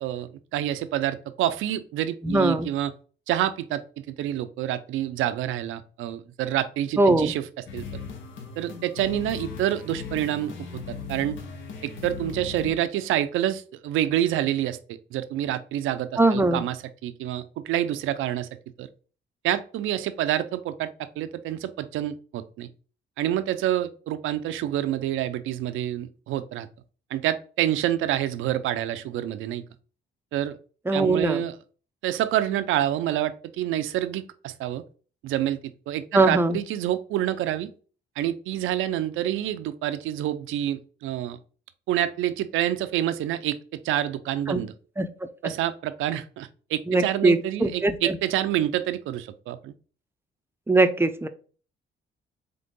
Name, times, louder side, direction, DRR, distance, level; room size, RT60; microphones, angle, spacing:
voice 1, 0.0-2.9 3.3-7.5 7.7-7.9 8.6-11.4 11.8-14.8 15.1-16.8 17.0-18.5 18.8-18.9 19.4-20.9 21.2-22.7 23.2-26.7 27.1-29.6 30.3-30.6 30.9-31.5 32.0-34.8 35.2-37.7 38.2-41.4 41.9-43.6 43.8-44.7 45.4-49.7, right 12 dB, 85° right, 12 dB, 0.5 m, -27 dB
voice 2, 2.2-2.7 7.0-7.3 16.2-16.6 30.9-31.4 36.1-36.6 44.5-44.6 45.0-45.1 46.9-48.2 50.7-51.3, right 2 dB, 10° right, 9 dB, 0.5 m, -21 dB
sound 1, 7.7-12.7, left 5 dB, 75° left, 1.0 m, -38 dB
3.9 x 3.7 x 3.6 m, 0.39 s
cardioid pair, 90°, 20 cm